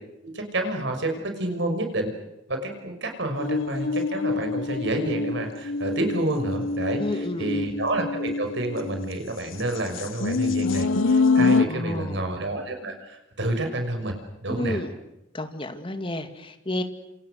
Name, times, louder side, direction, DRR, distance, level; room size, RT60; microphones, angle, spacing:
voice 1, 0.2-2.1 2.5-14.1 14.4-14.8, right 1 dB, 65° right, 5 dB, 6.1 m, -29 dB
sound 1, 3.4-9.1 9.8-11.7, left 3 dB, 85° left, 1.3 m, -25 dB
voice 2, 7.0-7.7 11.6-12.3 14.5-14.9 15.3-16.8, left 1 dB, 25° left, 7 dB, 2.4 m, -31 dB
28.0 x 27.5 x 6.7 m, 0.92 s
head